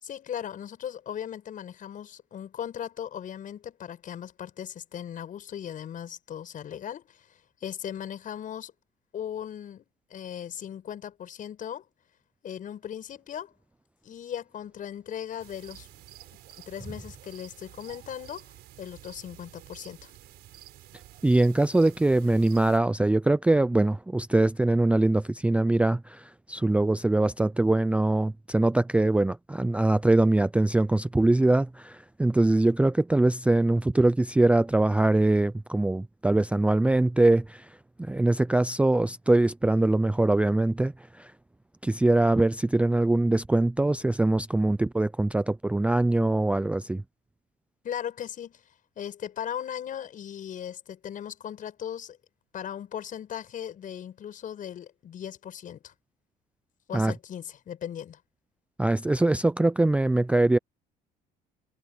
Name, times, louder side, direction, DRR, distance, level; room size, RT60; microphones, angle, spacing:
voice 1, 0.0-8.7 9.1-9.8 10.1-11.8 12.4-13.5 14.0-15.9 16.6-20.1 47.8-48.6 48.9-52.2 52.5-55.9 56.9-58.2, left 9 dB, 50° left, 6.7 m, -38 dB
sound 1, 15.4-22.8, right 14 dB, 70° right, 4.3 m, -50 dB
voice 2, 21.2-41.3 41.8-47.0 56.9-57.1 58.8-60.6, right 2 dB, 5° right, 0.5 m, -23 dB
cardioid pair, 110°, 18 cm